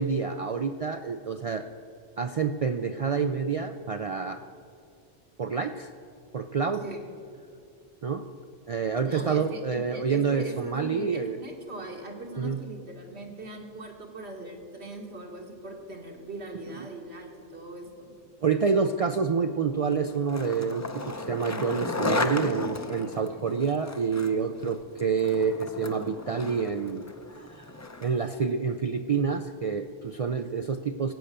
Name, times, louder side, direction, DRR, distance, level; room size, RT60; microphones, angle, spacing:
voice 1, 0.0-1.7 2.2-4.5 5.4-5.9 6.3-6.8 8.0-8.3 8.7-11.4 12.4-12.6 18.4-27.7 28.0-31.1, right 5 dB, 55° right, 8 dB, 0.4 m, -28 dB
voice 2, 9.1-18.1, right 1 dB, 80° right, 0 dB, 2.2 m, -40 dB
Skateboard, 19.9-28.3, left 3 dB, 20° left, 0.5 m, -35 dB
15.5 x 8.6 x 6.8 m, 2.5 s
omnidirectional pair, 1.1 m